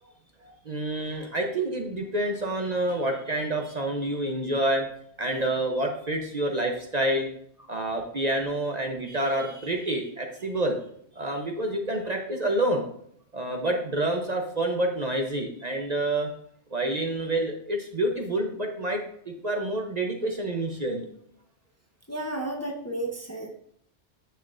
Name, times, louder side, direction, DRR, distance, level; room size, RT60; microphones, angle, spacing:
voice 1, 0.4-4.9 5.2-7.3 7.7-10.8 11.1-12.8 13.3-16.3 16.7-21.1, right 1 dB, 40° right, 2 dB, 0.9 m, -28 dB
voice 2, 22.1-23.5, right 1 dB, 15° left, 1 dB, 0.9 m, -32 dB
9.8 x 6.7 x 2.6 m, 0.68 s
omnidirectional pair, 1.2 m